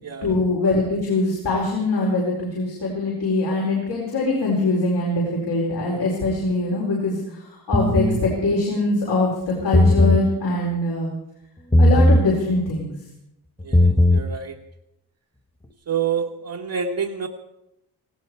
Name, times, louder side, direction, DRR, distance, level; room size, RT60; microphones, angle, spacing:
voice 1, 0.2-11.1 11.8-12.9, left 2 dB, 80° left, -4 dB, 4.8 m, -23 dB
sound 1, 7.7-8.2 9.6-10.3 11.7-12.3 13.6-14.3, left 1 dB, 15° left, 1.4 m, -16 dB
voice 2, 13.6-14.5 15.9-17.3, right 7 dB, 60° right, -2 dB, 1.4 m, -27 dB
18.5 x 16.0 x 4.8 m, 0.85 s
cardioid pair, 105°, 39 cm